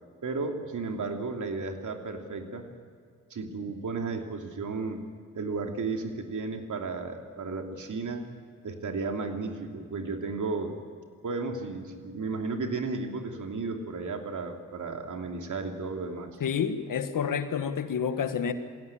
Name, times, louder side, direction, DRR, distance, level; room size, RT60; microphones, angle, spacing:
voice 1, 0.2-2.7 3.3-5.0 5.3-8.2 8.6-10.8 11.2-16.4, right 4 dB, 65° right, 4 dB, 2.9 m, -34 dB
voice 2, 16.4-18.5, left 7 dB, 75° left, 9 dB, 1.6 m, -29 dB
21.5 x 17.0 x 8.8 m, 2.2 s
supercardioid pair, 45°, 33 cm